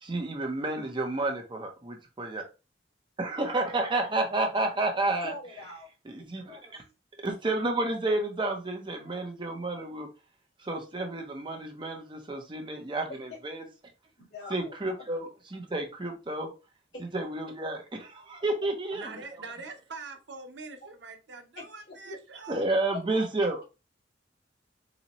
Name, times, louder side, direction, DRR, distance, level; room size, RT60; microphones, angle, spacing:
voice 1, 0.0-2.4 3.2-5.3 6.0-6.8 7.2-10.1 10.6-13.7 14.5-16.5 17.0-19.2 22.5-23.6, right 2 dB, 30° right, 3 dB, 0.6 m, -31 dB
voice 2, 5.2-5.9 6.2-6.9 11.0-11.1 13.1-13.4 14.2-14.7 16.9-17.1 21.6-21.7 22.1-22.2 23.1-23.5, left 2 dB, 65° left, -5 dB, 1.8 m, -44 dB
voice 3, 18.9-22.6, right 3 dB, 90° right, 6 dB, 0.7 m, -44 dB
3.9 x 2.2 x 2.9 m, 0.30 s
head